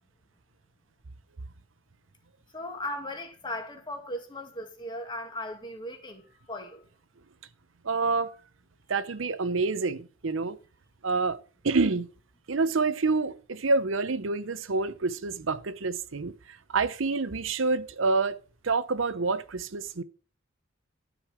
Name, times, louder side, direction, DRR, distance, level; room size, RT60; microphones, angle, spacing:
voice 1, 2.5-6.8, left 1 dB, 25° left, 2.0 m, -37 dB
voice 2, 7.8-8.3 8.9-10.6 11.0-11.4 11.6-12.1 12.5-18.4 18.6-20.0, right 3 dB, 70° right, 0.8 m, -27 dB
12.5 x 5.3 x 6.0 m
head